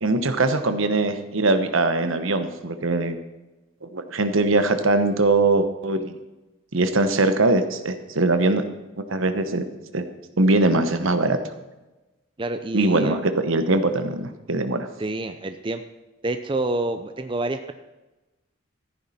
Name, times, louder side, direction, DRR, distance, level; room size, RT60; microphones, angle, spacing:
voice 1, 0.0-3.2 3.8-6.1 6.7-8.6 9.1-9.6 9.9-10.1 10.4-11.4 12.7-14.9, right 2 dB, 75° right, 9 dB, 1.1 m, -21 dB
voice 2, 12.4-13.2 15.0-15.8 16.2-17.7, right 2 dB, 25° right, 8 dB, 0.5 m, -27 dB
14.0 x 9.9 x 4.3 m, 1.1 s
head